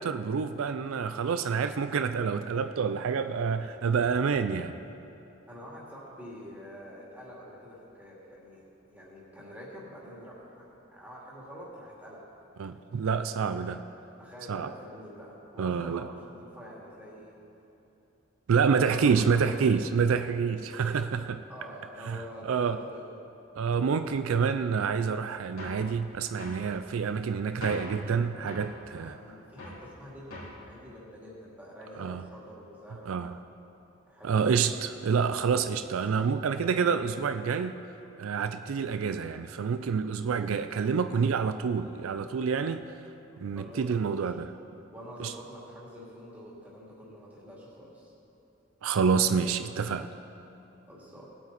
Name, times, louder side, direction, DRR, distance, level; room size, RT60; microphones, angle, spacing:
voice 1, 0.0-4.8 12.6-13.8 14.5-14.7 15.6-16.1 18.5-21.4 22.1-22.8 23.6-29.2 32.0-32.2 33.1-33.4 34.2-37.7 38.2-42.8 43.4-44.5 45.2-45.3 48.8-50.1, right 6 dB, 80° right, 0.4 m, -28 dB
voice 2, 5.5-8.6 8.9-10.7 10.9-12.2 13.2-13.6 14.2-17.3 18.5-19.5 21.5-23.2 28.8-33.1 34.1-34.5 43.6-44.3 44.9-48.1 50.9-51.3, equal, 10° right, 2.3 m, -47 dB
sound 1, 25.6-25.9 26.4-26.7 27.6-28.0 28.5-28.7 29.6-29.9 30.3-30.6, left 1 dB, 80° left, 2.9 m, -41 dB
19.0 x 8.5 x 4.1 m
head